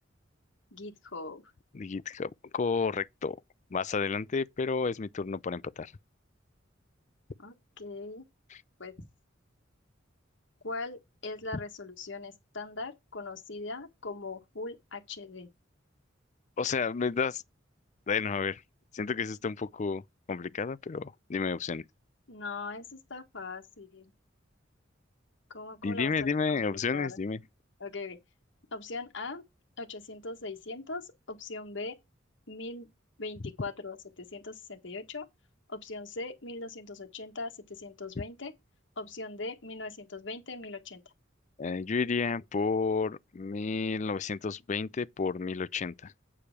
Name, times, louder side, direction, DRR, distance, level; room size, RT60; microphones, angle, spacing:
voice 1, 0.7-1.4 7.4-8.2 8.8-8.9 10.6-15.5 22.3-24.1 25.5-27.2 27.8-28.2 28.7-29.4 29.8-32.0 32.5-32.9 33.2-35.3 35.7-38.5 39.0-41.0, left 3 dB, 70° left, 1.7 m, -40 dB
voice 2, 1.7-3.4 3.7-5.9 8.5-8.6 16.6-17.4 18.1-18.6 18.9-20.0 20.3-21.8 25.8-27.4 41.6-46.1, left 5 dB, 40° left, 0.4 m, -31 dB
8.4 x 4.9 x 6.0 m
head